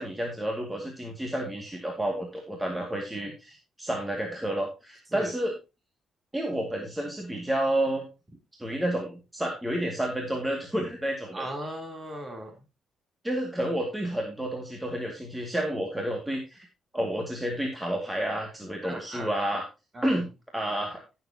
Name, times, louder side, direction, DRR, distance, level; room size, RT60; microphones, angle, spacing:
voice 1, 0.0-5.5 6.3-8.1 8.6-11.5 13.2-16.6 16.9-19.7 20.0-20.3 20.5-21.0, right 1 dB, 10° right, 1 dB, 2.3 m, -30 dB
voice 2, 11.3-12.6 18.8-19.5 19.9-20.1, right 1 dB, 30° right, 4 dB, 3.5 m, -37 dB
14.5 x 7.2 x 2.9 m, 0.28 s
cardioid pair, 85°, 0 cm